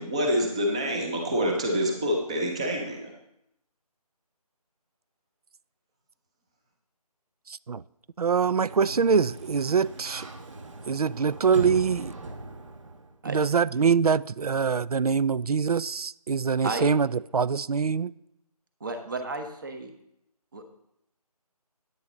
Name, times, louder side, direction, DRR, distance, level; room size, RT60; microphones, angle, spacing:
voice 1, 0.0-3.1, equal, 10° right, 0.7 m, -27 dB
voice 2, 8.2-10.3 10.9-12.1 13.3-17.1 17.3-18.1, right 6 dB, 70° right, 0.5 m, -24 dB
Sliding door, 8.3-13.2, right 2 dB, 50° right, 1.4 m, -40 dB
voice 3, 18.8-19.9 20.5-20.6, right 3 dB, 30° right, 1.4 m, -32 dB
10.5 x 9.9 x 3.9 m
figure-of-eight pair, 170°, 20 cm